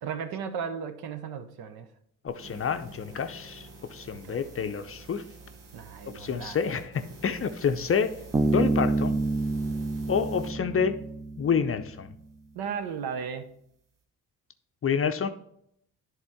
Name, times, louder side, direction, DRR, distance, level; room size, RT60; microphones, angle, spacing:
voice 1, 0.0-1.9 4.1-4.9 5.7-6.6 12.5-13.5, right 6 dB, 60° right, 9 dB, 0.9 m, -36 dB
voice 2, 2.2-5.2 6.1-6.9 7.2-8.1 8.5-9.2 10.1-10.9 11.4-12.1 14.8-15.3, left 6 dB, 30° left, 8 dB, 0.6 m, -28 dB
sound 1, 2.3-10.5, right 3 dB, 85° right, 1.1 m, -48 dB
Bass guitar, 8.3-11.8, right 2 dB, 10° right, 0.4 m, -28 dB
11.0 x 3.6 x 3.5 m, 0.72 s
hypercardioid pair, 45°, 43 cm